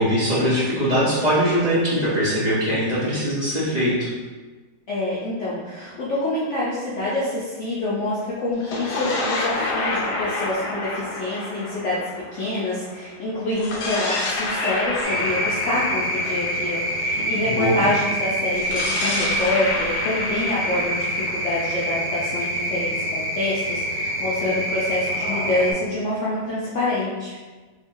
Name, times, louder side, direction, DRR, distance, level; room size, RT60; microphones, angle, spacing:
voice 1, 0.0-4.1 17.5-17.9, equal, 30° right, -11 dB, 1.0 m, -21 dB
voice 2, 4.9-27.4, left 2 dB, 60° left, -9 dB, 0.8 m, -26 dB
sound 1, 8.5-12.9 13.5-17.5 18.5-22.3, left 2 dB, 75° left, 1.2 m, -29 dB
sound 2, 15.0-25.7, equal, 55° right, 1.5 m, -26 dB
3.8 x 3.2 x 2.6 m, 1.3 s
omnidirectional pair, 1.8 m